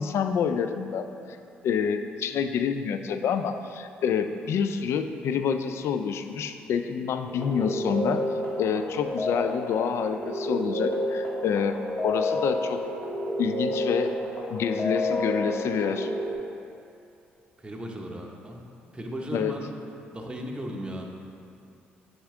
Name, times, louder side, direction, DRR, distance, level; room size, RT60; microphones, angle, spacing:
voice 1, 0.0-1.4 1.6-8.2 8.6-11.8 12.0-12.8 13.4-14.1 14.5-16.1 19.3-19.5, left 7 dB, 65° left, 9 dB, 0.3 m, -27 dB
sound 1, 7.3-16.3, left 1 dB, 35° left, 1.4 m, -30 dB
voice 2, 17.6-18.7 18.9-19.7 20.1-21.1, right 1 dB, 20° right, 0 dB, 0.8 m, -36 dB
7.1 x 3.6 x 3.6 m, 2.6 s
hypercardioid pair, 50°, 5 cm